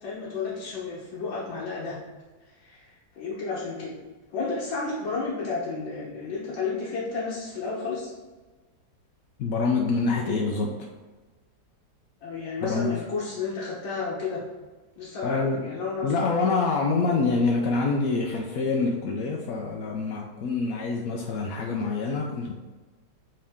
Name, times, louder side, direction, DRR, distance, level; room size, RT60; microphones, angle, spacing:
voice 1, 0.0-2.0 2.6-2.9 3.2-4.0 4.3-8.1 12.2-14.4 15.0-16.1, left 4 dB, 80° left, -6 dB, 1.9 m, -32 dB
voice 2, 9.4-10.8 12.6-13.0 15.2-15.6 16.0-22.5, left 4 dB, 65° left, 0 dB, 0.9 m, -26 dB
7.8 x 3.8 x 3.6 m, 1.3 s
omnidirectional pair, 2.0 m